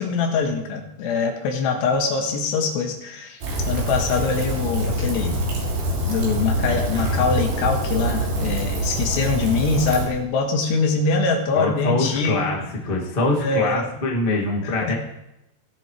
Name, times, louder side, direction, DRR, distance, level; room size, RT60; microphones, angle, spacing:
voice 1, 0.0-3.4 3.7-5.4 6.0-12.9 13.4-13.9 14.6-15.0, left 4 dB, 85° left, 3 dB, 3.4 m, -23 dB
Rain, 3.4-10.1, right 1 dB, 65° right, 4.4 m, -25 dB
voice 2, 11.5-12.6 12.8-14.9, left 2 dB, 45° left, -2 dB, 0.7 m, -23 dB
19.5 x 7.7 x 3.2 m, 0.88 s
omnidirectional pair, 4.8 m